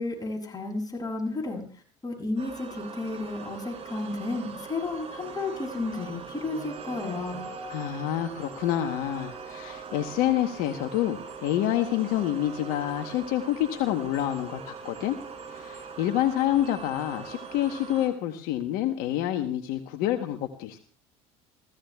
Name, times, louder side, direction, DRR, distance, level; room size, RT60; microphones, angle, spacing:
voice 1, 0.0-7.4, left 2 dB, 25° left, 0 dB, 7.5 m, -32 dB
sound 1, 2.4-18.1, right 5 dB, 45° right, 6.1 m, -41 dB
voice 2, 7.7-15.2 15.5-20.8, left 12 dB, 70° left, 7 dB, 1.0 m, -28 dB
29.5 x 16.0 x 2.3 m, 0.41 s
hypercardioid pair, 75°, 15 cm